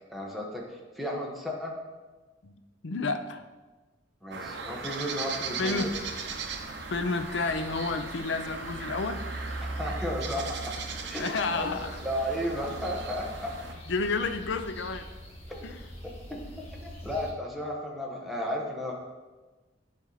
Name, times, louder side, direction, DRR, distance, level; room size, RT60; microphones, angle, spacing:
voice 1, 0.1-0.6 1.0-1.7 4.2-5.9 9.6-10.7 11.0-11.3 11.5-11.7 12.0-13.5 15.5-15.6 16.3-16.4 16.8-18.9, equal, ahead, -2 dB, 1.2 m, -33 dB
voice 2, 2.8-3.4 5.6-5.9 6.9-9.2 11.2-11.9 13.9-15.1 15.6-15.8, left 3 dB, 70° left, 9 dB, 0.6 m, -30 dB
sound 1, 4.3-13.7, right 5 dB, 65° right, 0.8 m, -38 dB
Field Marbaek, 5.7-17.3, right 1 dB, 35° left, 1.6 m, -42 dB
11.0 x 4.5 x 4.0 m, 1.3 s
head